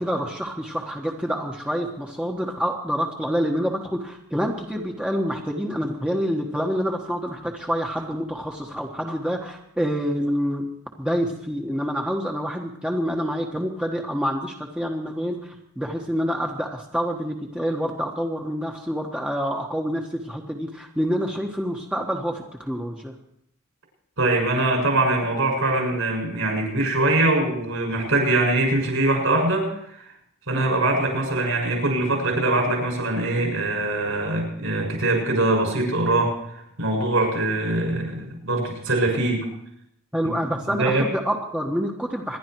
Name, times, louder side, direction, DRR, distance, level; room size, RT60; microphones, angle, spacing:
voice 1, 0.0-10.7 11.0-23.1 40.1-42.4, equal, 5° right, 0 dB, 1.3 m, -27 dB
voice 2, 24.2-29.7 30.5-36.3 36.8-39.5 40.6-41.0, right 2 dB, 65° right, 1 dB, 7.0 m, -22 dB
26.5 x 11.5 x 4.7 m, 0.73 s
head